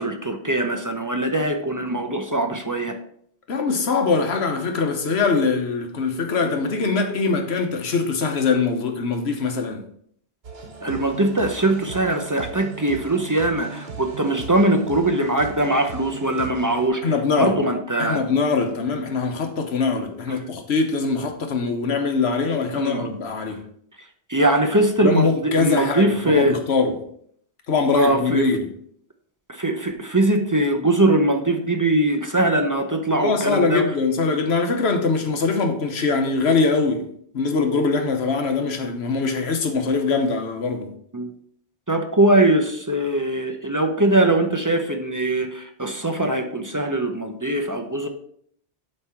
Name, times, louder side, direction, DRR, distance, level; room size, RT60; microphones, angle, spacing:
voice 1, 0.0-3.0 10.8-17.1 17.4-18.2 20.3-20.4 22.8-23.1 24.3-26.6 27.9-28.5 29.5-33.9 41.1-41.3 41.9-48.1, right 1 dB, 25° right, 0.5 m, -21 dB
voice 2, 3.5-9.8 17.0-17.6 18.0-23.6 25.0-27.0 27.7-28.7 33.2-37.0 37.3-40.9, left 4 dB, 70° left, 1.2 m, -22 dB
sound 1, 10.4-16.9, right 5 dB, 65° right, 1.3 m, -38 dB
8.0 x 3.3 x 5.7 m
omnidirectional pair, 1.1 m